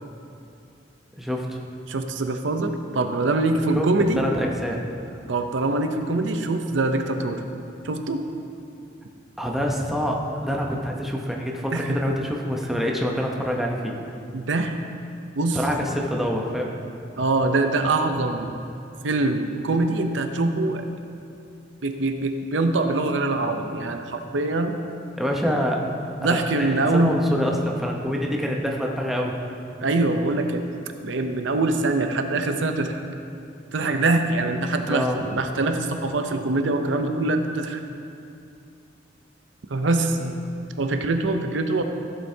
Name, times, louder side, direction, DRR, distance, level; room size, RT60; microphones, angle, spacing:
voice 1, 1.2-1.6 3.7-3.9 4.1-4.8 5.1-5.2 9.4-13.9 15.5-16.7 25.2-25.8 26.2-29.4 34.9-35.3 40.2-40.4, equal, ahead, -1 dB, 0.8 m, -26 dB
voice 2, 1.9-4.2 5.3-7.4 7.8-8.3 11.7-12.0 14.3-14.8 15.3-15.6 17.2-18.6 19.0-20.8 21.8-24.7 26.2-27.2 29.8-30.6 31.0-33.0 33.7-37.8 39.7-40.2 40.8-41.8, right 2 dB, 80° right, 6 dB, 0.6 m, -23 dB
14.5 x 7.8 x 2.8 m, 2.6 s
head